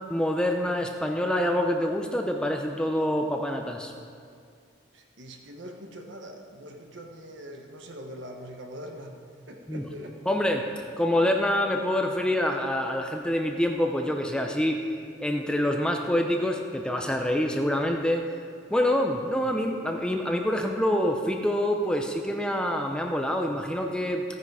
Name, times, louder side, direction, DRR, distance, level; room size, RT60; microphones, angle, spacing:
voice 1, 0.1-3.9 9.7-9.8 10.3-10.6 11.0-14.8 15.2-18.3 18.7-24.2, left 1 dB, 5° left, 3 dB, 0.6 m, -26 dB
voice 2, 4.9-9.2 9.5-10.2, equal, 65° right, 3 dB, 1.3 m, -42 dB
14.5 x 9.6 x 4.8 m, 2.2 s
head